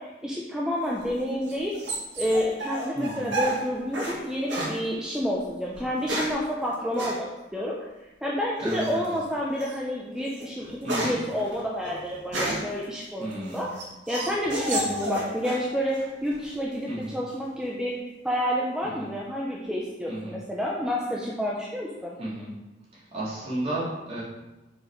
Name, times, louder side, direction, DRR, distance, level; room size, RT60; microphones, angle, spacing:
voice 1, 0.0-1.7 2.2-7.7 8.2-13.7 14.1-17.9 18.2-22.1, equal, 5° right, -4 dB, 0.7 m, -29 dB
sound 1, 0.9-4.2 4.5-4.8 5.7-6.4 7.0-7.2 8.7-9.1 9.6-9.8 10.2-12.8 13.3-15.7 15.9-16.5, right 1 dB, 85° right, 1.8 m, -31 dB
voice 2, 2.9-3.3 8.6-9.1 10.8-11.1 13.2-13.7 14.7-15.1 16.9-17.2 18.8-19.1 20.1-20.4 22.2-22.5 22.9-24.2, right 1 dB, 40° right, -8 dB, 2.6 m, -33 dB
6.3 x 4.7 x 4.7 m, 1.0 s
head